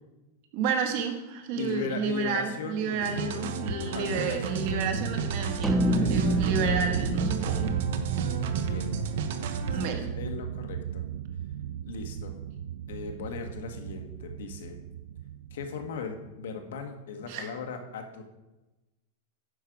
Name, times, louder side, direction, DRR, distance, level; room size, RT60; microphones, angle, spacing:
voice 1, 0.5-7.7 9.7-10.1 17.3-17.5, right 5 dB, 45° right, 5 dB, 1.3 m, -31 dB
voice 2, 1.5-3.1 3.8-4.5 6.0-6.4 7.4-7.8 8.6-8.9 9.7-11.1 11.8-12.4 12.9-14.8 15.5-18.2, left 5 dB, 75° left, 5 dB, 1.4 m, -38 dB
sound 1, 3.0-9.9, right 4 dB, 60° right, 0.8 m, -33 dB
sound 2, 4.1-16.5, right 9 dB, 75° right, 0.3 m, -35 dB
sound 3, 5.6-10.1, right 1 dB, 5° right, 0.4 m, -30 dB
10.0 x 6.5 x 4.8 m, 1.0 s
supercardioid pair, 175°, 0 cm